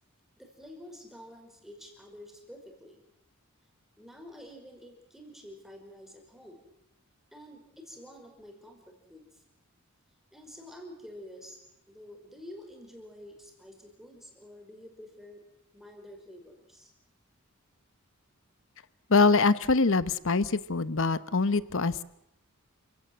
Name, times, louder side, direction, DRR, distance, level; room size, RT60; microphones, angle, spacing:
voice 1, 0.4-3.0 4.0-6.6 7.3-9.4 10.3-11.6 11.9-15.4 15.7-16.9, left 1 dB, ahead, 2 dB, 5.2 m, -49 dB
voice 2, 19.1-22.0, left 3 dB, 60° left, 15 dB, 1.0 m, -24 dB
29.0 x 17.0 x 7.9 m, 0.81 s
head